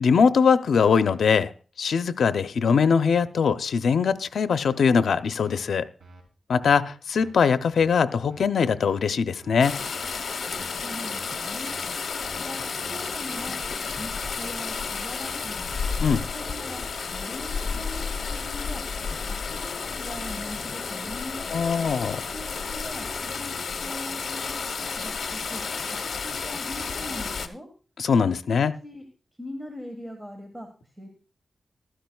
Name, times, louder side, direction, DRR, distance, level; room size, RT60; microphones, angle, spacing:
voice 1, 0.0-1.5 1.8-5.9 6.5-9.8 16.0-16.3 21.5-22.2 28.0-28.7, left 6 dB, 85° left, 0.5 m, -22 dB
sound 1, 5.4-5.7 6.0-6.2 6.6-6.7 7.2-7.3 7.7-7.9 8.3-8.5 8.8-9.0 9.4-9.6 9.9-10.1 10.5-10.7 11.1-11.3 11.7-11.9 12.2-12.4 12.8-13.1 13.3-13.5 13.9-14.8 15.2-17.0 17.4-19.2 19.8-21.7 22.8-23.7, right 2 dB, 70° right, 4.0 m, -50 dB
sound 2, 9.6-27.5, left 5 dB, 65° left, 0.9 m, -32 dB
voice 2, 10.8-11.7 12.3-13.6 14.0-15.6 16.1-16.8 17.1-18.8 19.3-21.4 22.3-25.6 26.2-27.7 28.5-29.0 29.4-30.7 31.0-31.1, equal, 10° right, 1.6 m, -41 dB
15.0 x 12.5 x 2.3 m
wide cardioid pair, 105°, 0 cm